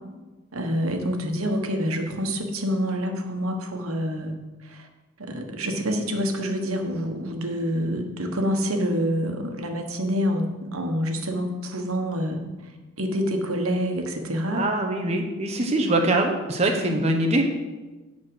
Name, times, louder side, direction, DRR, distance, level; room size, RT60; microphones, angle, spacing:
voice 1, 0.5-4.3 4.6-4.9 5.2-12.7 13.0-14.7 16.7-17.0, equal, 85° right, 4 dB, 1.3 m, -27 dB
voice 2, 14.5-17.5, right 1 dB, 30° right, 3 dB, 0.9 m, -23 dB
11.0 x 4.3 x 7.9 m, 1.2 s
head